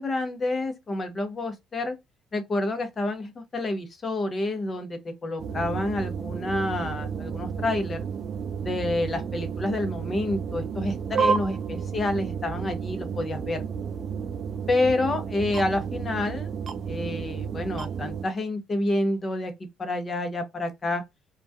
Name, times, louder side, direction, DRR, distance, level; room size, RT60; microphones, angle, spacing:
voice 1, 0.0-2.0 2.3-8.0 8.6-13.6 14.7-16.5 16.9-19.5 19.8-21.0, left 2 dB, 30° left, 0.6 m, -28 dB
sound 1, 5.4-18.3, right 6 dB, 45° right, 0.3 m, -31 dB
2.2 x 2.1 x 2.5 m
cardioid pair, 125°, 0 cm